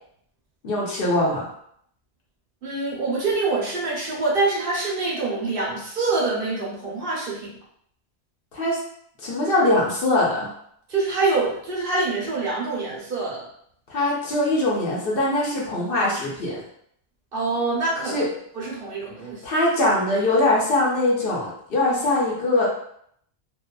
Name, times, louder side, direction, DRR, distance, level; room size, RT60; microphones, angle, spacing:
voice 1, 0.6-1.5 8.5-8.8 9.2-10.5 13.9-16.6 18.0-18.3 19.4-22.7, left 2 dB, 60° left, -4 dB, 0.9 m, -22 dB
voice 2, 2.6-7.5 10.9-13.4 17.3-18.3 18.6-19.4, right 3 dB, 60° right, -5 dB, 1.0 m, -25 dB
2.6 x 2.3 x 2.2 m, 0.68 s
omnidirectional pair, 1.1 m